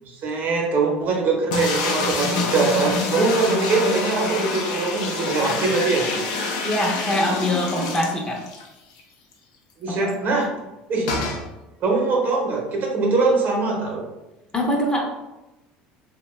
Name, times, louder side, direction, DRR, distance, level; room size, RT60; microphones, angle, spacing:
voice 1, 0.0-6.1 9.8-10.5 10.9-11.1 11.8-14.1, right 4 dB, 50° right, -1 dB, 0.8 m, -22 dB
sound 1, 1.5-8.7 9.0-9.1 9.3-9.4 11.1-11.4, left 3 dB, 85° left, 0.5 m, -26 dB
voice 2, 6.6-8.4 9.9-10.1 14.5-15.1, left 1 dB, 20° left, -1 dB, 0.7 m, -23 dB
2.6 x 2.2 x 3.1 m, 1.0 s
supercardioid pair, 95°, 4 cm